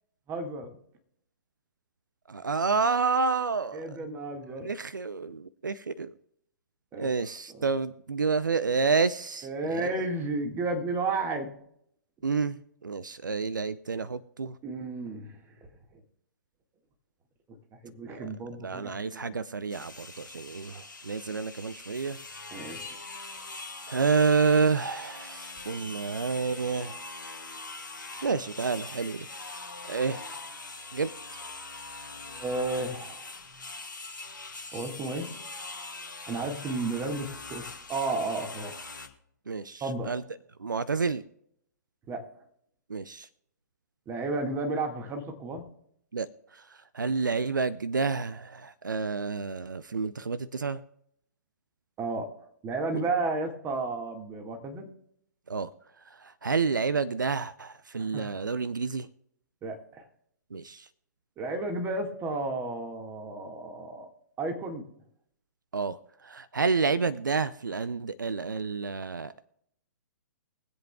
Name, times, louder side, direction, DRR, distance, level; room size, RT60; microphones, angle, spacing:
voice 1, 0.3-0.8 3.7-4.7 6.9-7.1 7.5-7.7 9.4-11.5 14.6-15.4 15.9-16.0 17.8-19.4 22.5-23.0 32.3-33.3 34.7-35.3 36.3-38.7 39.8-40.1 42.1-42.2 44.1-45.7 52.0-52.3 52.6-54.9 58.0-58.3 59.6-60.0 61.4-64.1 64.4-64.8, right 3 dB, 20° right, 4 dB, 1.8 m, -33 dB
voice 2, 2.3-4.0 4.6-6.1 7.0-9.8 12.2-12.6 12.8-14.5 18.1-18.3 18.6-22.2 23.9-27.0 28.2-29.3 29.9-30.2 30.9-31.1 39.5-40.2 40.6-41.2 42.9-43.3 46.1-46.3 46.9-50.8 52.9-53.0 55.5-55.7 56.4-59.1 60.5-60.8 65.7-66.0 66.2-69.3, right 4 dB, 80° right, 16 dB, 0.5 m, -29 dB
sound 1, 19.7-39.1, left 3 dB, 85° left, 1.7 m, -42 dB
23.5 x 7.9 x 2.3 m, 0.72 s
figure-of-eight pair, 120°, 10 cm